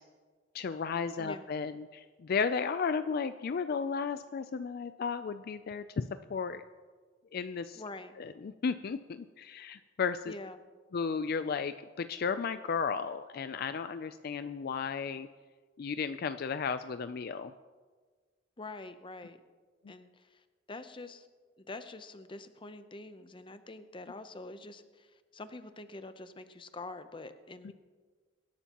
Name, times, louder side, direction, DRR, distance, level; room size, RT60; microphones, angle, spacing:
voice 1, 0.5-6.6 7.3-7.8 8.2-10.3 10.9-15.3 15.8-17.5 27.6-27.7, left 5 dB, 55° left, 11 dB, 0.4 m, -34 dB
voice 2, 7.8-8.2 10.2-10.6 18.6-19.4 19.9-21.3 21.6-27.7, left 2 dB, 25° left, 10 dB, 0.7 m, -46 dB
23.5 x 11.5 x 3.0 m, 1.5 s
head